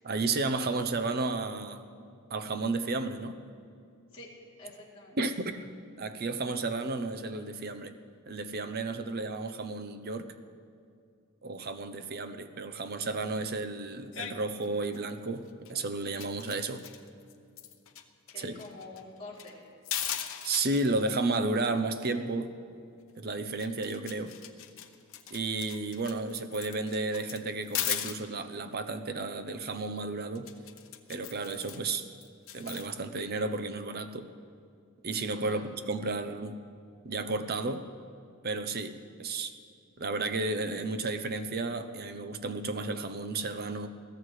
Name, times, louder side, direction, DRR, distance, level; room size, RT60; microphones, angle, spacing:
voice 1, 0.0-1.8 2.3-3.4 5.2-5.6 6.0-7.9 8.3-10.3 11.4-16.9 18.4-18.6 20.4-22.5 23.2-24.3 25.3-30.5 31.1-32.1 32.5-34.3 35.0-36.6 37.0-37.9 38.4-39.5 40.0-43.9, right 3 dB, 45° right, 9 dB, 0.7 m, -32 dB
voice 2, 4.6-5.2 18.3-19.6 35.5-35.7, left 2 dB, 25° left, -6 dB, 3.1 m, -47 dB
sound 1, 14.1-14.3 14.6-15.1 15.5-15.7 16.0-18.0 18.3-18.4 18.6-19.5 19.8-20.8 23.2-23.3 23.6-28.2 30.4-31.8 32.2-32.9, left 11 dB, 60° left, 0.9 m, -38 dB
21.5 x 15.5 x 3.2 m, 2.5 s
head